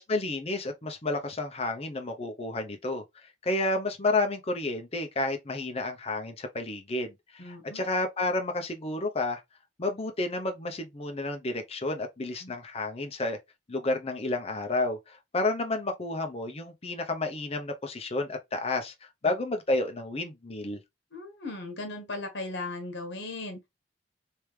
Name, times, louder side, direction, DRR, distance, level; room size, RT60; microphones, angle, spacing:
voice 1, 0.0-3.0 3.4-9.4 9.8-13.4 13.7-20.8, left 2 dB, 30° left, 0.7 m, -31 dB
voice 2, 7.4-7.8 12.4-12.5 19.2-19.3 21.1-23.7, left 2 dB, 60° left, 1.3 m, -37 dB
3.3 x 3.3 x 3.1 m
head